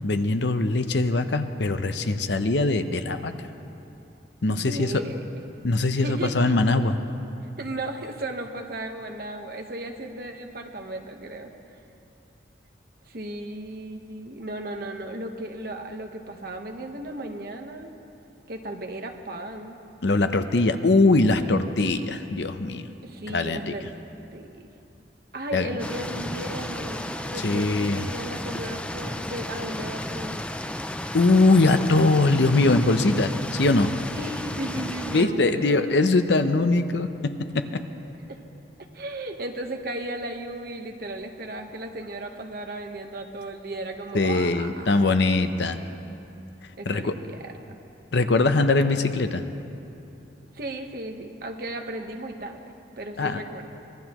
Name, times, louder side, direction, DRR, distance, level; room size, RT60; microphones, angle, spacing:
voice 1, 0.0-3.3 4.4-5.0 5.6-7.0 20.0-22.9 23.3-23.7 25.5-25.8 27.3-28.1 31.1-33.9 35.1-37.8 44.1-45.8 46.9-47.1 48.1-49.4 53.2-53.4, left 2 dB, 65° left, 9 dB, 0.7 m, -22 dB
voice 2, 4.5-5.2 6.0-6.3 7.6-11.5 13.1-17.9 18.5-19.8 23.0-23.9 24.3-24.6 25.3-30.4 34.1-35.8 38.3-38.4 38.9-45.0 46.8-47.8 50.5-53.7, right 1 dB, 50° right, 4 dB, 1.1 m, -35 dB
sound 1, 25.8-35.3, left 1 dB, 5° left, 0.3 m, -33 dB
24.5 x 18.5 x 3.0 m, 2.8 s
head